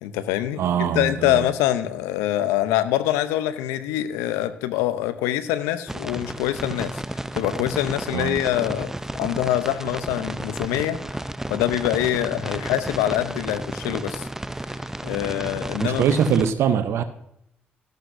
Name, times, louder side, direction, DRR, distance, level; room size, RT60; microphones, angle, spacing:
voice 1, 0.0-11.2 11.5-14.3 15.0-16.2, left 13 dB, 85° left, 0.6 m, -25 dB
voice 2, 0.6-1.4 8.1-8.4 15.8-17.0, right 8 dB, 70° right, 0.6 m, -22 dB
sound 1, 5.9-16.5, right 1 dB, 10° right, 0.5 m, -32 dB
13.0 x 11.5 x 2.6 m
hypercardioid pair, 50°, 5 cm